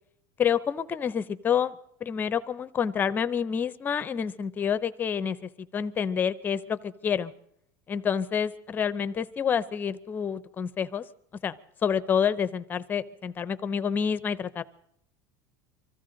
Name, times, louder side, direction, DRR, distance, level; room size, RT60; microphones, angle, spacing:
voice 1, 0.4-7.3 7.9-11.0 11.4-11.6 11.8-14.6, left 7 dB, 20° left, 13 dB, 0.5 m, -28 dB
25.0 x 15.0 x 3.8 m, 0.68 s
supercardioid pair, 165°, 10 cm